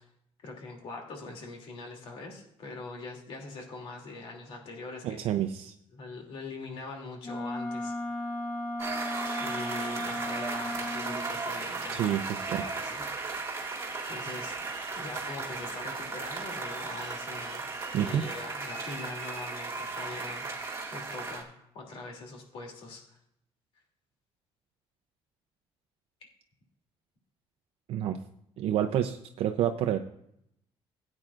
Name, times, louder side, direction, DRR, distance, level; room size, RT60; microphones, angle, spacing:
voice 1, 0.4-5.2 5.9-7.9 9.4-13.0 14.1-14.6 14.9-20.5 20.9-23.2, left 3 dB, 65° left, 1 dB, 2.8 m, -42 dB
voice 2, 5.0-5.7 11.9-12.6 17.9-18.2 27.9-28.2 28.6-30.0, right 10 dB, 70° right, 6 dB, 0.6 m, -29 dB
Wind instrument woodwind instrument, 7.2-11.3, left 1 dB, 20° left, 1.2 m, -35 dB
sound 1, 8.8-21.4, right 4 dB, 30° right, 2.0 m, -36 dB
16.5 x 8.7 x 2.5 m, 0.74 s
cardioid pair, 135°, 10 cm